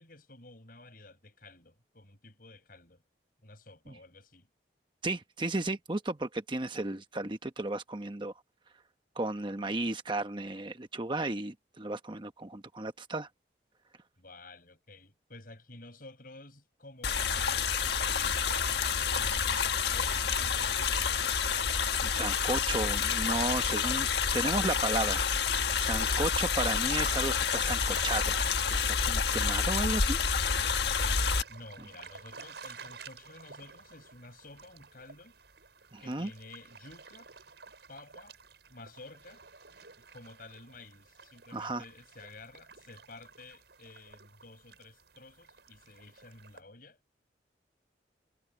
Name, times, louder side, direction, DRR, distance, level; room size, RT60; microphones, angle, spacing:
voice 1, 0.0-3.0 3.4-4.5 14.2-21.4 31.5-35.4 36.0-37.3 37.9-38.4 38.7-39.4 40.0-47.0, left 2 dB, 50° left, 7.1 m, -52 dB
voice 2, 5.0-8.3 9.2-13.3 22.0-24.1 24.3-25.2 25.8-28.4 28.7-30.2 35.9-36.3 41.5-41.8, right 2 dB, 25° right, 1.0 m, -34 dB
sound 1, 17.0-31.4, left 6 dB, 65° left, 1.5 m, -29 dB
sound 2, 30.7-46.6, right 5 dB, 75° right, 6.1 m, -53 dB
head